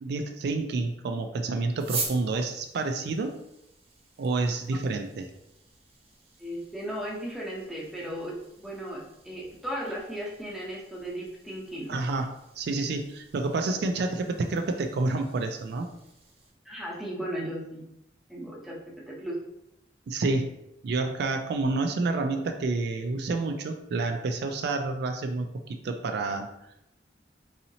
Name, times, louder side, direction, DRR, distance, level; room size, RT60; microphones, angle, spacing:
voice 1, 0.0-3.4 4.2-5.3 11.9-15.9 20.1-20.5 20.8-26.5, right 3 dB, 65° right, 5 dB, 0.3 m, -29 dB
sound 1, 1.8-16.5, right 4 dB, 35° right, 0.8 m, -44 dB
voice 2, 6.4-12.0 16.6-17.8 18.3-18.7 19.1-19.4, equal, ahead, -4 dB, 0.8 m, -36 dB
4.0 x 2.8 x 2.7 m, 0.83 s
head